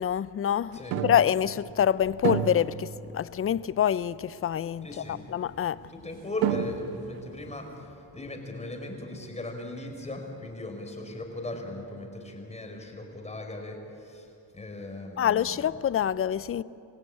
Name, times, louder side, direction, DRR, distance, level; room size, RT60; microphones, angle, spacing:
voice 1, 0.0-5.8 15.2-16.6, left 9 dB, 40° left, 0.6 m, -26 dB
sound 1, 0.9-1.8 2.2-3.4 3.8-3.9 4.8-4.9 6.0-6.1 6.4-7.2, right 8 dB, 90° right, 1.3 m, -30 dB
voice 2, 4.8-5.2 5.9-14.3 14.5-15.4, left 1 dB, 20° left, 4.7 m, -38 dB
28.5 x 16.0 x 8.7 m
cardioid pair, 90°, 35 cm